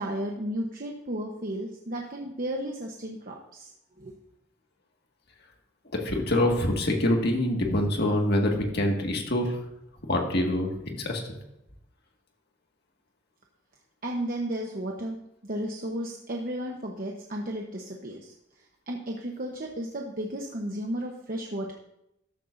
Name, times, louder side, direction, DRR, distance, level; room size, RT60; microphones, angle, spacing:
voice 1, 0.0-3.7 4.0-4.1 14.0-15.2 15.4-18.3 18.9-21.7, right 1 dB, 45° right, 0 dB, 1.0 m, -33 dB
voice 2, 5.9-9.6 10.1-11.2, left 1 dB, 55° left, 1 dB, 1.9 m, -25 dB
13.5 x 12.0 x 2.6 m, 0.84 s
head